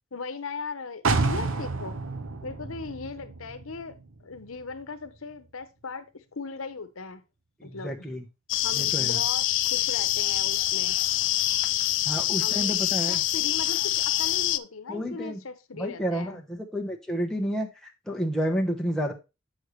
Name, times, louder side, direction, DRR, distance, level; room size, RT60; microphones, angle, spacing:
voice 1, 0.1-2.0 2.4-3.9 4.2-6.1 6.3-7.2 7.6-7.9 8.6-11.0 12.4-12.8 13.0-16.4, left 4 dB, 80° left, 0.9 m, -38 dB
sound 1, 1.0-4.8 5.2-5.3, right 3 dB, 70° right, 0.8 m, -30 dB
voice 2, 7.6-8.2 8.7-9.2 12.0-13.2 14.9-15.4 15.7-17.7 18.1-19.1, equal, 5° left, 1.0 m, -30 dB
sound 2, 8.5-14.6, left 14 dB, 65° left, 0.4 m, -25 dB
8.0 x 6.5 x 3.2 m
head